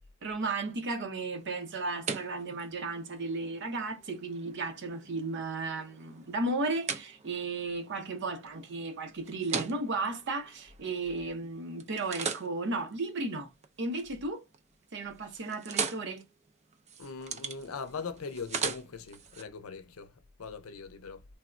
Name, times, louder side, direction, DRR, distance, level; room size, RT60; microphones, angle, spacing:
voice 1, 0.2-13.5 13.8-14.4 14.9-16.2, right 3 dB, 55° right, 0.7 m, -34 dB
sound 1, 1.4-11.4 11.8-14.1 14.4-14.9 15.1-19.4, right 5 dB, 35° right, 0.4 m, -40 dB
voice 2, 17.0-21.2, left 5 dB, 85° left, 0.5 m, -41 dB
3.4 x 2.0 x 2.4 m
head